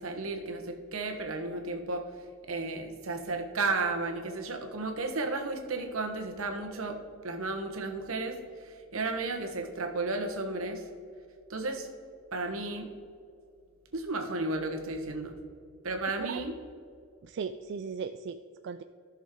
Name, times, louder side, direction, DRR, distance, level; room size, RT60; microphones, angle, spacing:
voice 1, 0.0-2.1 2.4-7.0 7.2-10.8 11.5-11.9 12.3-12.9 13.9-15.4 15.8-16.5, right 3 dB, 80° right, 4 dB, 1.3 m, -33 dB
voice 2, 17.2-18.8, right 6 dB, 55° right, 9 dB, 0.3 m, -37 dB
14.5 x 6.3 x 3.8 m, 2.3 s
head